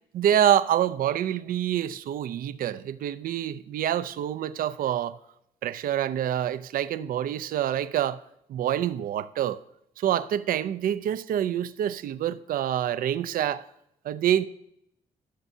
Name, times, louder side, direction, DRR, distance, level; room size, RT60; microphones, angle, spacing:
voice 1, 0.1-5.2 5.6-8.2 8.5-9.6 10.0-13.6 14.0-14.4, right 10 dB, 70° right, 0.5 m, -26 dB
15.0 x 7.0 x 2.7 m
supercardioid pair, 60°, 15 cm